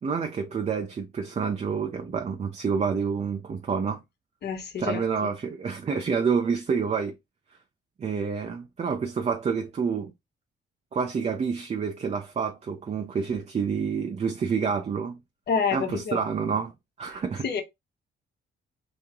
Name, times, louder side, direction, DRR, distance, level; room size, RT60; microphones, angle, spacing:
voice 1, 0.0-4.0 4.8-7.1 8.0-10.1 10.9-15.2 15.7-16.7 17.0-17.5, right 6 dB, 35° right, 0.5 m, -28 dB
voice 2, 4.4-5.0 15.5-16.3 17.4-17.6, left 6 dB, 55° left, 1.1 m, -28 dB
3.0 x 2.8 x 3.6 m
cardioid pair, 90°, 20 cm